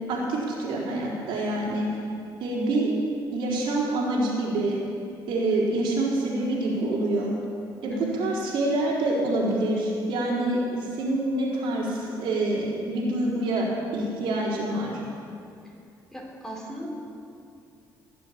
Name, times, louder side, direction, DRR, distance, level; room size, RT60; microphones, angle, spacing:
voice 1, 0.1-1.9 2.4-2.9 3.3-4.8 5.3-7.3 7.8-13.7 13.9-14.9, right 2 dB, 85° right, -4 dB, 4.1 m, -26 dB
voice 2, 7.9-8.2 16.1-17.0, right 1 dB, 5° left, -2 dB, 3.4 m, -37 dB
19.5 x 7.0 x 8.9 m, 2.5 s
cardioid pair, 115°, 8 cm